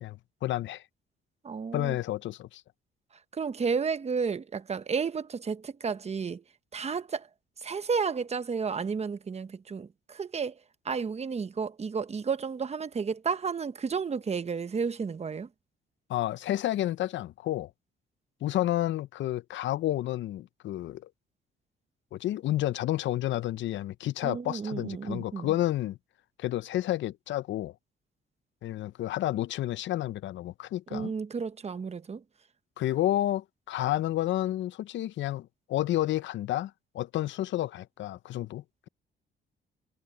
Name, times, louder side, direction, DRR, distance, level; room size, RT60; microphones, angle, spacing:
voice 1, 0.0-0.8 1.7-2.6 16.1-17.7 18.4-21.1 22.1-26.0 26.4-27.7 28.6-31.1 32.8-38.9, left 14 dB, 70° left, 0.6 m, -30 dB
voice 2, 1.4-2.0 3.3-6.4 6.7-7.3 7.6-10.6 10.8-15.5 24.2-25.5 30.9-32.2, right 5 dB, 30° right, 1.0 m, -32 dB
cardioid pair, 90°, 20 cm